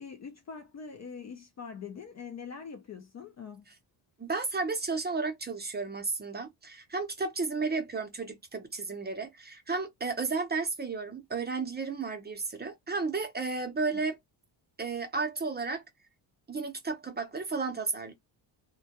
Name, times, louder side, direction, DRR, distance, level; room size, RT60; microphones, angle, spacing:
voice 1, 0.0-3.7, left 6 dB, 35° left, 0.4 m, -43 dB
voice 2, 4.2-14.2 14.8-15.8 16.5-18.1, right 4 dB, 20° right, 0.6 m, -33 dB
2.2 x 2.2 x 2.8 m
cardioid pair, 115°, 48 cm